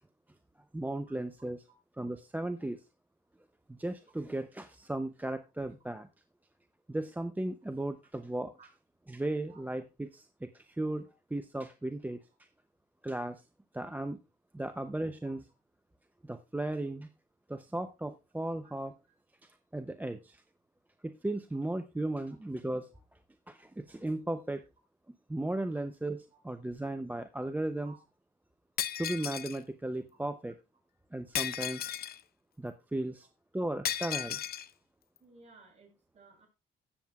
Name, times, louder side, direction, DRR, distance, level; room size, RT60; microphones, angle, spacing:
voice 1, 0.7-1.6 2.0-2.8 3.7-6.1 6.9-8.5 9.1-12.2 13.0-13.4 13.7-14.2 14.5-15.4 16.2-17.1 17.5-18.9 19.7-20.4 21.0-22.9 23.5-24.6 25.3-27.9 29.0-30.6 31.1-31.8 32.6-33.3 33.5-34.4, right 1 dB, 10° right, 9 dB, 0.6 m, -36 dB
Shatter, 28.8-29.6 31.3-32.2 33.8-34.7, left 10 dB, 50° left, 0.5 m, -35 dB
voice 2, 35.2-36.5, right 3 dB, 30° right, -1 dB, 6.0 m, -58 dB
17.0 x 7.4 x 2.3 m, 0.26 s
cardioid pair, 90°, 20 cm